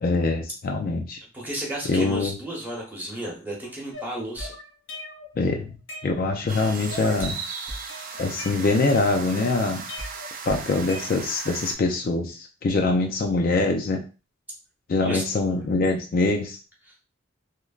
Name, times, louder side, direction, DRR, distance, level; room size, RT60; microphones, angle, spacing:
voice 1, 0.0-1.2 1.9-2.3 5.4-5.7 6.0-7.4 8.2-9.8 10.5-14.0 14.9-16.6, left 3 dB, 50° left, 3 dB, 0.4 m, -24 dB
voice 2, 1.3-4.5 15.0-15.6 16.8-16.9, right 1 dB, 10° right, -4 dB, 0.9 m, -33 dB
sound 1, 3.9-5.3 5.7-6.5 6.9-7.4 7.7-9.5 9.9-11.5, left 1 dB, 85° left, 1.1 m, -39 dB
sound 2, 6.5-11.7, right 5 dB, 45° right, 0.4 m, -37 dB
3.1 x 2.1 x 2.3 m, 0.33 s
head